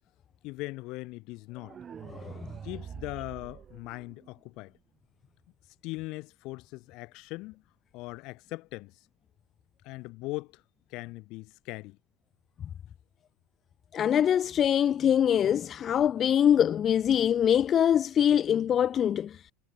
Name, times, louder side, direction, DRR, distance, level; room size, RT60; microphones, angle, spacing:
voice 1, 0.4-1.8 2.6-4.7 5.8-7.6 7.9-8.9 9.8-10.6 10.9-12.0, left 22 dB, 60° left, 4.9 m, -40 dB
sound 1, 1.6-4.6, right 7 dB, 30° right, 2.8 m, -45 dB
voice 2, 13.9-19.4, left 9 dB, 35° left, 0.4 m, -24 dB
supercardioid pair, 125°, 0 cm